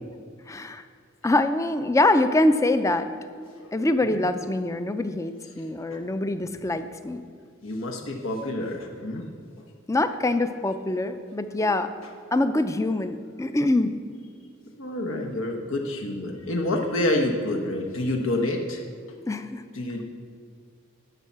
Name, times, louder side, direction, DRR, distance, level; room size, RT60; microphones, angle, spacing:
voice 1, 0.5-0.8 1.2-3.1 3.7-7.2 9.9-11.9 12.3-13.9 19.3-19.6, left 2 dB, 15° left, 10 dB, 0.4 m, -24 dB
voice 2, 7.6-9.2 14.8-18.8 19.1-19.2 19.7-20.0, left 1 dB, 80° left, 1 dB, 1.1 m, -28 dB
11.0 x 5.5 x 7.3 m, 2.1 s
head